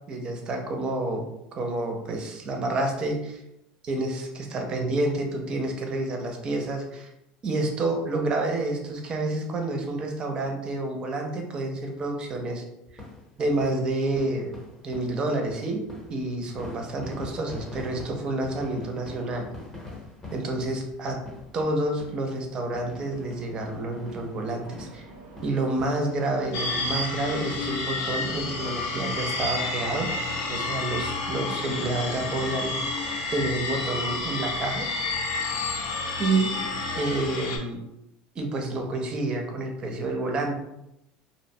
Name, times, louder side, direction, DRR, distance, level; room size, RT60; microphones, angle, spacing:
voice 1, 0.1-1.3 1.6-3.4 3.8-7.1 7.4-12.6 13.4-14.5 14.8-19.5 20.3-21.2 21.5-25.1 25.4-30.1 30.5-32.7 33.3-34.9 36.2-36.5 36.9-37.8 38.4-40.5, right 2 dB, 25° right, 3 dB, 0.4 m, -29 dB
sound 1, 12.9-26.8 27.0-27.2 27.6-27.7 28.1-28.3 28.6-29.5 30.0-30.1 30.2-30.3, left 2 dB, 15° left, 0.6 m, -44 dB
sound 2, 23.1-32.8, right 2 dB, 85° right, 0.5 m, -46 dB
sound 3, 26.5-37.6, left 3 dB, 70° left, 0.5 m, -30 dB
2.7 x 2.0 x 2.6 m, 0.86 s
cardioid pair, 155°, 3 cm